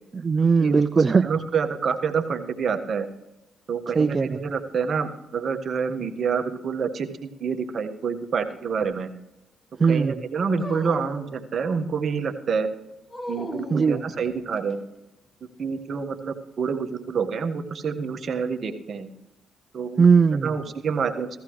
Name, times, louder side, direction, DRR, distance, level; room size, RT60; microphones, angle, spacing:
voice 1, 0.2-1.3 3.9-4.4 9.8-10.2 13.7-14.0 20.0-20.5, right 5 dB, 40° right, 12 dB, 0.4 m, -19 dB
voice 2, 1.2-3.1 3.7-9.1 9.9-12.7 13.3-14.8 15.6-19.1 19.7-20.1 20.4-21.3, right 6 dB, 55° right, 6 dB, 1.4 m, -27 dB
Dog, 10.6-12.0 13.1-14.7, left 1 dB, 30° left, 2.8 m, -38 dB
16.5 x 15.0 x 3.2 m, 0.94 s
supercardioid pair, 60°, 0 cm